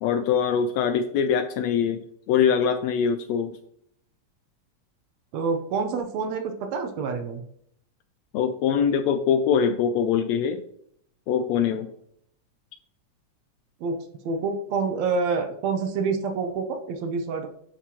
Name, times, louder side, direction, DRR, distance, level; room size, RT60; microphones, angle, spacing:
voice 1, 0.0-3.6 8.3-10.6 11.3-11.9, left 7 dB, 80° left, 9 dB, 1.6 m, -23 dB
voice 2, 5.3-7.5 13.8-14.0 14.2-17.5, right 4 dB, 70° right, 5 dB, 1.9 m, -27 dB
11.0 x 5.4 x 2.9 m, 0.68 s
omnidirectional pair, 3.4 m